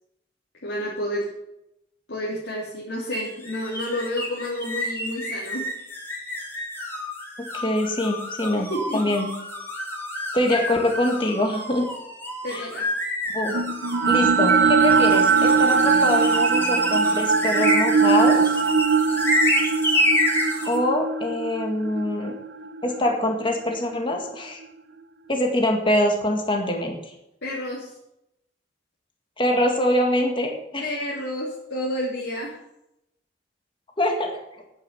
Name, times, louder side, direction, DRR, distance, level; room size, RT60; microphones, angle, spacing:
voice 1, 0.6-1.3 2.1-5.6 8.7-9.1 10.4-10.6 12.4-12.9 27.4-27.9 30.8-32.6, left 1 dB, 85° left, -6 dB, 3.2 m, -30 dB
sound 1, 3.1-20.8, left 1 dB, 15° left, 3.0 m, -28 dB
voice 2, 7.4-9.3 10.3-11.9 12.5-12.7 13.3-13.6 14.1-18.6 20.7-22.3 22.8-24.6 25.3-27.0 29.4-30.8 34.0-34.4, left 1 dB, 30° left, 2 dB, 2.0 m, -24 dB
sound 2, 13.5-23.7, right 5 dB, 75° right, 0.8 m, -21 dB
9.5 x 9.4 x 7.0 m, 0.83 s
head